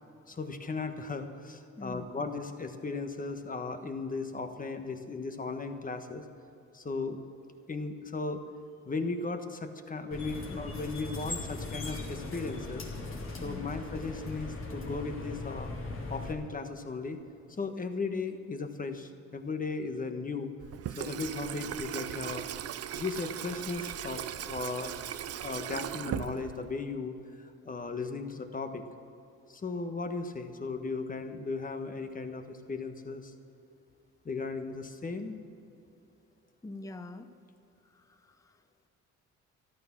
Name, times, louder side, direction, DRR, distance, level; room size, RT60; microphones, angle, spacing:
voice 1, 0.3-6.2 6.7-7.2 7.7-8.4 8.8-12.9 13.4-15.7 16.1-17.2 17.6-20.5 21.0-22.5 22.9-24.9 25.4-28.8 29.5-33.3 34.2-35.4, left 4 dB, 25° left, 7 dB, 1.3 m, -36 dB
sound 1, 10.1-16.3, left 2 dB, 45° left, 2.6 m, -39 dB
Water tap faucet / Sink (filling or washing), 20.6-26.9, right 10 dB, 55° right, 0.5 m, -38 dB
voice 2, 36.6-37.3 37.8-38.9, left 2 dB, 10° left, 9 dB, 0.8 m, -45 dB
13.5 x 12.5 x 6.1 m, 2.8 s
cardioid pair, 90°, 30 cm